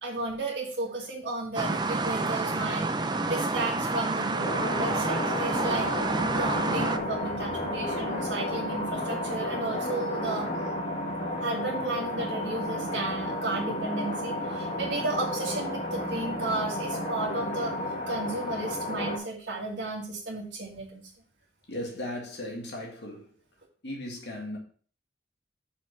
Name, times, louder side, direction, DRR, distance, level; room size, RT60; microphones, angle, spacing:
voice 1, 0.0-2.9 3.3-10.5 11.4-17.7 18.1-21.1, right 2 dB, 75° right, 1.9 m, -33 dB
sound 1, 1.6-7.0, right 3 dB, 25° right, 0.5 m, -29 dB
sound 2, 4.4-19.2, left 1 dB, 35° left, 2.0 m, -32 dB
voice 2, 21.7-23.3 23.8-24.6, left 1 dB, 65° left, 1.9 m, -37 dB
5.6 x 5.3 x 5.8 m
head